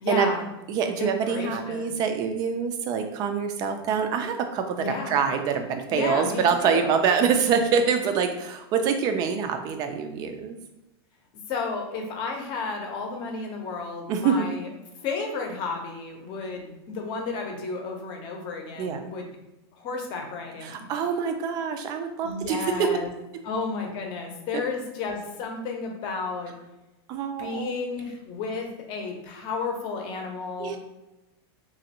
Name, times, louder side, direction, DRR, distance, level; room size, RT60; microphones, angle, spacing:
voice 1, 0.0-0.5 1.0-1.9 4.8-5.2 5.9-7.0 11.5-14.7 15.0-19.3 19.7-20.8 22.2-23.1 23.4-26.5 27.4-30.8, left 4 dB, 35° left, 2 dB, 0.7 m, -32 dB
voice 2, 0.7-10.6 14.1-14.5 18.8-19.1 20.6-22.9 27.1-27.7 30.6-30.8, right 6 dB, 30° right, 6 dB, 0.3 m, -25 dB
3.0 x 2.5 x 2.8 m, 0.97 s
supercardioid pair, 145°, 13 cm